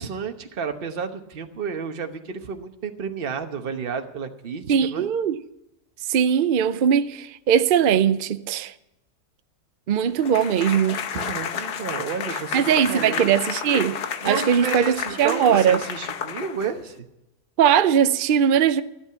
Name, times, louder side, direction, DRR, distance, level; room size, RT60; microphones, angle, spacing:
voice 1, 0.0-5.1 11.1-13.3 14.2-17.0, right 6 dB, 40° right, 1.2 m, -31 dB
voice 2, 4.7-5.4 6.1-8.7 9.9-11.0 12.5-14.0 14.2-15.8 17.6-18.8, right 8 dB, 65° right, 0.5 m, -20 dB
sound 1, 10.2-17.0, left 7 dB, 85° left, 1.5 m, -31 dB
14.0 x 11.5 x 5.7 m
omnidirectional pair, 1.7 m